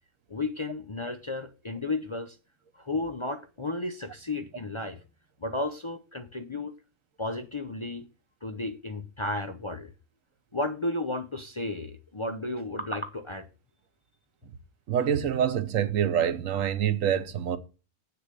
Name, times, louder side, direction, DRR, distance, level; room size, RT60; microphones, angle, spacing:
voice 1, 0.3-2.4 2.7-5.0 5.4-6.8 7.2-8.1 8.4-9.9 10.5-13.5, left 2 dB, 30° left, 0.5 m, -33 dB
voice 2, 14.9-17.6, right 9 dB, 80° right, 1.2 m, -26 dB
7.9 x 6.8 x 6.7 m
omnidirectional pair, 1.3 m